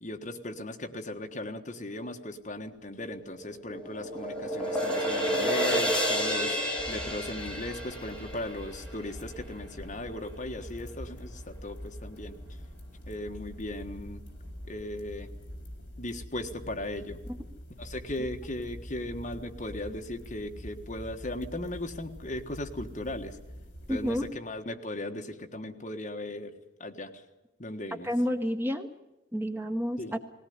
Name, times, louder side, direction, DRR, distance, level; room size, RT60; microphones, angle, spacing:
voice 1, 0.0-6.6 6.9-12.4 13.1-14.2 14.7-15.3 16.0-17.2 17.8-23.4 23.9-26.5 26.8-27.1 27.6-28.1 30.0-30.1, left 1 dB, 40° left, 4 dB, 1.5 m, -37 dB
sound 1, 3.2-9.5, equal, 5° left, 2.4 m, -30 dB
sound 2, 6.8-24.3, equal, 65° left, 4.8 m, -45 dB
voice 2, 23.9-24.2 28.0-28.9 29.3-30.2, equal, 10° right, 6 dB, 0.8 m, -29 dB
19.5 x 17.5 x 9.4 m, 1.0 s
head